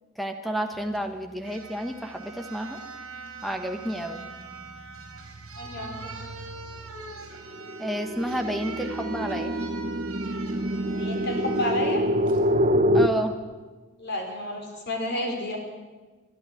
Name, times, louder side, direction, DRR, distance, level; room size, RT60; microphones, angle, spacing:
voice 1, 0.2-2.8 3.4-4.2 7.8-9.5 12.9-13.3, equal, ahead, 6 dB, 1.1 m, -30 dB
sound 1, 0.9-1.0 1.4-11.8 12.3-12.4, right 4 dB, 75° right, 3.6 m, -43 dB
sound 2, 3.4-3.7 4.1-13.1, equal, 30° right, 1.0 m, -27 dB
voice 2, 5.6-6.1 10.9-12.0 14.0-15.6, left 1 dB, 50° left, 2 dB, 4.5 m, -30 dB
21.0 x 13.0 x 9.7 m, 1.3 s
head